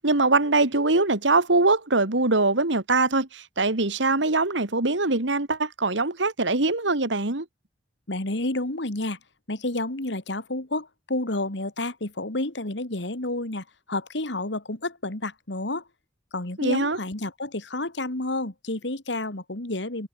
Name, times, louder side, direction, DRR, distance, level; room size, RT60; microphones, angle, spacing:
voice 1, 0.0-7.5 16.6-17.0, right 3 dB, 80° right, 2.3 m, -22 dB
voice 2, 8.1-9.2 9.5-15.8 16.3-20.1, left 2 dB, 70° left, 2.6 m, -30 dB
head